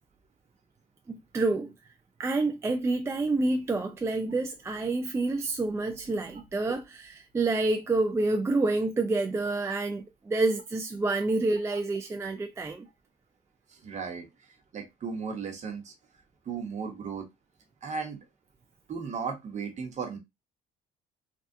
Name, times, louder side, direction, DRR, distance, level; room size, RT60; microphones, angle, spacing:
voice 1, 1.1-1.8 2.2-12.9, right 2 dB, 15° right, 0.4 m, -28 dB
voice 2, 13.7-14.3 14.7-15.9 16.4-17.3 17.8-18.2 18.9-20.2, right 5 dB, 45° right, 1.1 m, -35 dB
3.3 x 2.3 x 2.7 m
cardioid pair, 110°, 17 cm